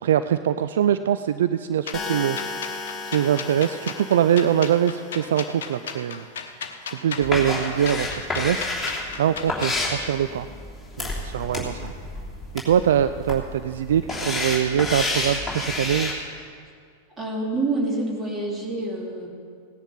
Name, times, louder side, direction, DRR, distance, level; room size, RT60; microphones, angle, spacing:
voice 1, 0.0-2.7 3.0-6.2 6.9-8.7 9.2-10.5 11.0-11.9 12.6-16.1, right 9 dB, 60° right, 11 dB, 0.3 m, -23 dB
sound 1, 1.9-9.8, left 6 dB, 60° left, 1.0 m, -36 dB
sound 2, 1.9-6.0, left 4 dB, 25° left, 1.6 m, -35 dB
sound 3, 7.2-16.1, left 2 dB, 5° left, 3.2 m, -29 dB
voice 2, 17.2-19.3, right 2 dB, 15° right, -1 dB, 2.8 m, -27 dB
17.0 x 10.0 x 5.5 m, 2.2 s
figure-of-eight pair, 90°, 0 cm